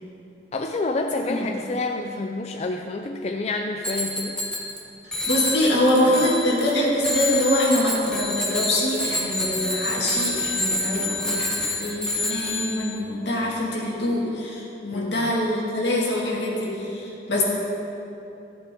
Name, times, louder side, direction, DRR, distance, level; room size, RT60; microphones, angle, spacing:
voice 1, 0.5-4.4 6.1-6.2 14.9-15.3, left 2 dB, 35° left, 3 dB, 0.4 m, -28 dB
Bicycle bell, 3.8-4.8 5.1-6.7 7.0-12.9, left 2 dB, 5° left, 1.2 m, -27 dB
voice 2, 5.3-17.4, left 1 dB, 75° left, -4 dB, 2.1 m, -24 dB
13.0 x 8.4 x 3.7 m, 2.9 s
head